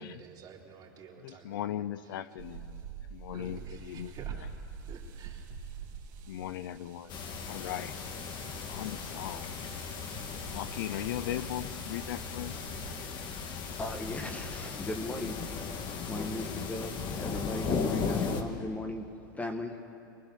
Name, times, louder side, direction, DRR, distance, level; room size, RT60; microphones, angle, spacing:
voice 1, 0.0-2.3 3.3-4.5 4.9-5.5, right 6 dB, 40° right, -1 dB, 3.9 m, -51 dB
voice 2, 1.2-2.8 3.1-4.1 6.3-7.2 7.5-7.9 8.7-9.6 10.5-12.7, left 12 dB, 80° left, 15 dB, 0.7 m, -38 dB
sound 1, 2.4-12.9, right 7 dB, 70° right, 3.1 m, -47 dB
sound 2, 7.1-18.4, left 5 dB, 45° left, 2.1 m, -36 dB
voice 3, 13.8-15.5 16.1-19.1 19.4-19.8, left 1 dB, 15° left, 5 dB, 1.6 m, -37 dB
24.0 x 20.5 x 6.6 m, 2.8 s
supercardioid pair, 115°, 11 cm